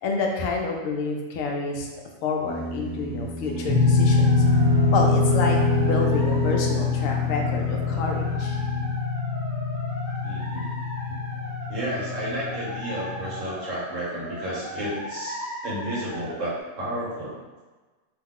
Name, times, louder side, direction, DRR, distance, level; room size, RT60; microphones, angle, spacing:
voice 1, 0.0-1.9 2.2-4.7 4.9-8.6, left 3 dB, 75° left, 0 dB, 0.9 m, -29 dB
sound 1, 2.4-9.0, right 1 dB, 5° right, 0.5 m, -30 dB
sound 2, 3.4-16.6, left 1 dB, 50° left, 1.1 m, -38 dB
sound 3, 3.7-13.4, left 4 dB, 15° left, 1.0 m, -24 dB
voice 2, 10.2-10.7 11.1-17.4, right 1 dB, 65° right, -7 dB, 1.3 m, -32 dB
2.9 x 2.2 x 3.6 m, 1.3 s
omnidirectional pair, 1.4 m